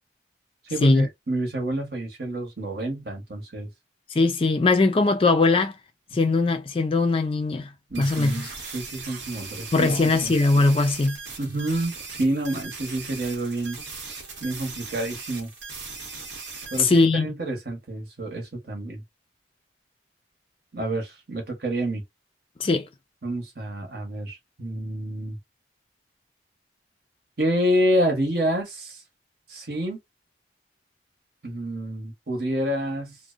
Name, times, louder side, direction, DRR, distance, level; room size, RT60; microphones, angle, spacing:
voice 1, 0.7-3.7 7.9-10.3 11.4-13.8 14.1-15.5 16.7-19.0 20.7-22.0 23.2-25.4 27.4-29.0 29.5-30.0 31.4-33.2, right 1 dB, 55° right, 1.0 m, -28 dB
voice 2, 4.1-5.7 6.1-7.7 8.0-8.3 9.7-11.2 16.8-17.3 22.6-22.9, left 3 dB, 30° left, 0.3 m, -20 dB
sound 1, 7.9-16.8, right 4 dB, 90° right, 1.0 m, -39 dB
2.6 x 2.1 x 2.4 m
head